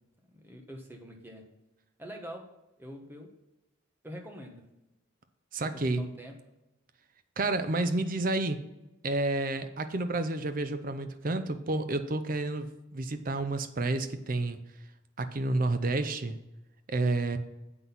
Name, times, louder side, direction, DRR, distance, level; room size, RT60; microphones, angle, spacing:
voice 1, 0.3-1.4 2.0-2.4 2.8-3.3 4.0-4.6 5.7-6.3, equal, 10° right, 2 dB, 1.2 m, -44 dB
voice 2, 5.5-6.1 7.4-8.6 9.0-14.7 15.2-16.4 16.9-17.4, right 2 dB, 40° right, 9 dB, 0.6 m, -30 dB
7.8 x 5.9 x 5.5 m, 0.95 s
head